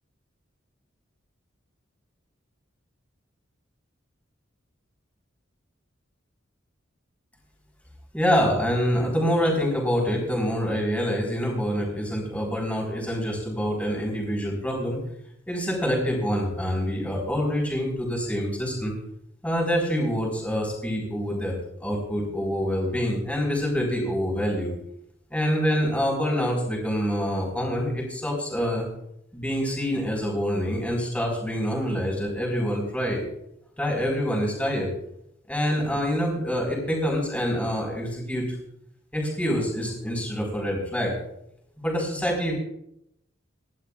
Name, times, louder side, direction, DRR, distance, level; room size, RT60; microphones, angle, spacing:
voice 1, 8.1-15.0 15.5-19.0 19.4-24.7 25.3-28.9 29.3-33.3 33.8-34.9 35.5-38.6 39.1-41.2 41.8-42.5, equal, 5° left, -1 dB, 4.4 m, -26 dB
27.0 x 11.5 x 2.4 m, 0.77 s
head